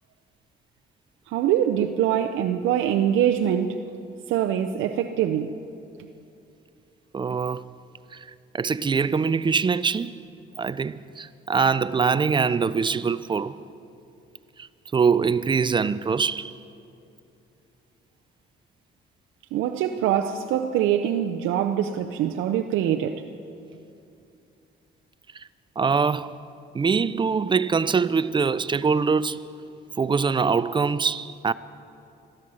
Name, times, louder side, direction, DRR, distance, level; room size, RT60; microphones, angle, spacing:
voice 1, 1.3-3.8 4.3-5.6 19.5-23.3, right 10 dB, 90° right, 0.5 m, -24 dB
voice 2, 7.1-7.6 8.1-8.3 8.5-10.2 10.6-13.6 14.6-16.6 25.3-25.5 25.8-26.3 26.7-29.5 30.0-31.5, right 5 dB, 25° right, 0.4 m, -23 dB
14.0 x 12.5 x 6.2 m
cardioid pair, 90°, 20 cm